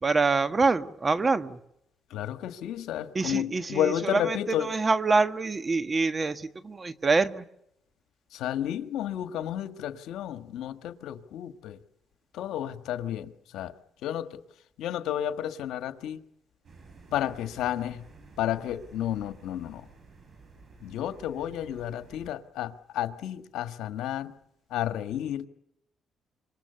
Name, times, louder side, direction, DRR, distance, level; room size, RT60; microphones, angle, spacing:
voice 1, 0.0-1.6 3.1-7.4, right 4 dB, 30° right, 10 dB, 1.6 m, -26 dB
voice 2, 2.1-4.7 8.3-11.8 12.3-13.8 14.0-14.4 14.8-16.2 17.1-18.1 18.4-19.9 20.8-24.3 24.7-25.5, left 11 dB, 85° left, 8 dB, 1.5 m, -32 dB
sound 1, 16.6-22.3, right 4 dB, 50° right, 7.2 m, -52 dB
27.0 x 24.5 x 6.9 m, 0.80 s
cardioid pair, 90°, 0 cm